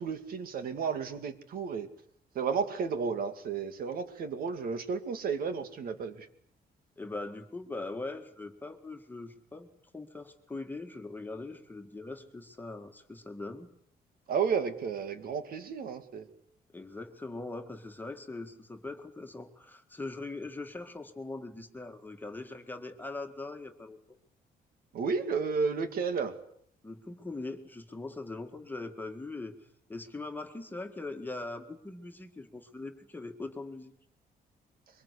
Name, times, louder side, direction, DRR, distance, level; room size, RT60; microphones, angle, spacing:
voice 1, 0.0-1.9 2.3-6.3 14.3-16.3 24.9-26.4, right 5 dB, 65° right, 9 dB, 2.4 m, -32 dB
voice 2, 7.0-9.7 9.9-13.7 16.7-24.0 26.8-33.9, left 2 dB, 10° left, 5 dB, 2.0 m, -41 dB
23.5 x 22.0 x 8.4 m, 0.67 s
cardioid pair, 140°, 16 cm